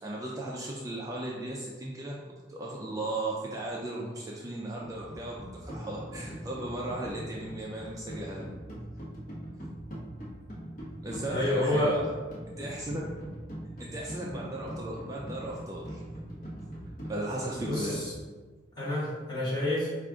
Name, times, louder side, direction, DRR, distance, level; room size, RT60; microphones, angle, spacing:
voice 1, 0.0-2.2 2.5-8.4 11.0-12.0 12.6-13.0 13.8-16.0 17.1-18.0, right 1 dB, 20° right, -3 dB, 0.4 m, -36 dB
sound 1, 4.8-18.0, equal, 50° left, 1.1 m, -42 dB
voice 2, 11.3-12.0 17.6-18.1 18.8-19.9, left 1 dB, 25° left, -8 dB, 1.3 m, -28 dB
4.8 x 2.4 x 3.6 m, 1.4 s
head